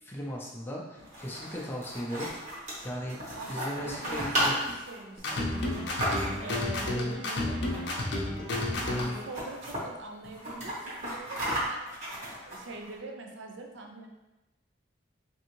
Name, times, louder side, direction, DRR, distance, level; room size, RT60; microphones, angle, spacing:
voice 1, 0.0-2.3 2.8-4.5, equal, 10° left, -3 dB, 0.4 m, -37 dB
sound 1, 1.0-6.6 7.6-8.1 8.4-8.5 8.7-9.8 10.2-12.9, equal, 40° right, 1.1 m, -34 dB
voice 2, 3.4-5.9 6.4-7.7 8.7-11.9 12.4-14.1, right 2 dB, 75° right, 2 dB, 0.5 m, -43 dB
sound 2, 5.2-9.2, left 1 dB, 65° left, 0.6 m, -31 dB
3.3 x 2.7 x 3.0 m, 1.1 s
head